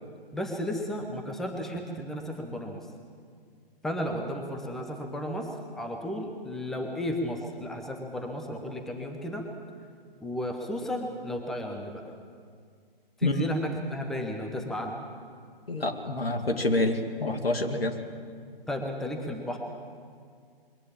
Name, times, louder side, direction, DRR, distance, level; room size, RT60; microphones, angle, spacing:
voice 1, 0.3-2.8 3.8-5.5 5.8-9.4 10.2-12.0 13.2-15.0 18.7-19.6, equal, ahead, 2 dB, 0.9 m, -33 dB
voice 2, 15.7-18.0, left 2 dB, 75° left, 5 dB, 2.3 m, -27 dB
22.0 x 17.5 x 7.3 m, 2.2 s
figure-of-eight pair, 135°, 30 cm